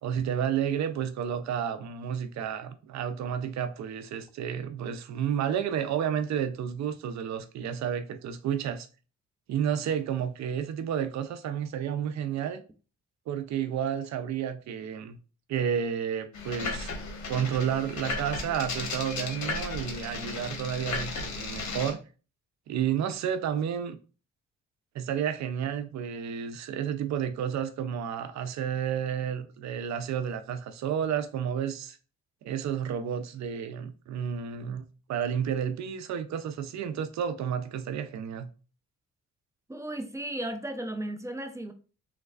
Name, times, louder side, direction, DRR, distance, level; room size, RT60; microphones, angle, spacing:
voice 1, 0.0-8.9 9.5-12.6 13.3-15.2 15.5-16.9 17.3-22.0 22.7-24.0 24.9-32.0 32.4-38.5, right 8 dB, 65° right, 0.5 m, -31 dB
sound 1, 16.3-21.9, left 3 dB, 65° left, 1.2 m, -35 dB
voice 2, 39.7-41.7, right 1 dB, 10° right, 0.4 m, -35 dB
3.2 x 3.2 x 2.4 m
cardioid pair, 90°, 30 cm